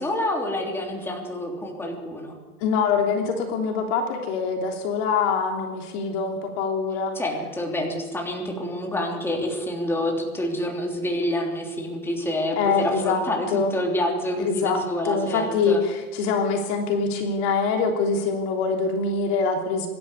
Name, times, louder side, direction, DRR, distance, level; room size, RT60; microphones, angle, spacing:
voice 1, 0.0-2.3 7.1-15.8, left 1 dB, 5° left, 0 dB, 3.2 m, -27 dB
voice 2, 2.6-7.2 12.6-13.2 13.5-13.7 14.4-19.9, left 5 dB, 45° left, 2 dB, 3.3 m, -24 dB
25.0 x 12.0 x 9.7 m, 1.3 s
supercardioid pair, 150°, 43 cm